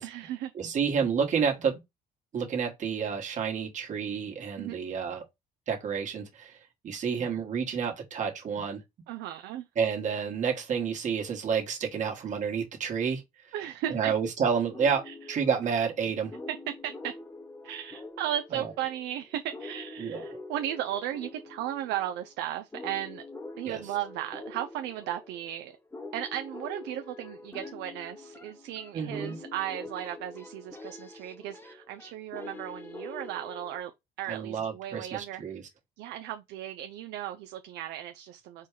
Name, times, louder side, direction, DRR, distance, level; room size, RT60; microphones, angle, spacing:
voice 1, 0.0-0.5 4.6-4.8 9.1-9.7 13.5-14.1 15.1-15.2 16.8-17.1 17.6-23.2 23.6-25.8 26.1-33.9 34.2-35.4 36.0-38.7, right 12 dB, 85° right, 0.5 m, -36 dB
voice 2, 0.5-1.8 2.3-5.2 5.7-6.6 6.8-8.8 9.8-13.5 13.9-16.3 18.5-18.7 20.0-20.2 23.7-23.8 28.9-29.4 34.3-35.6, right 6 dB, 45° right, 1.3 m, -30 dB
sound 1, 14.7-33.8, left 2 dB, 10° left, 0.7 m, -45 dB
4.4 x 2.3 x 4.5 m
cardioid pair, 110°, 17 cm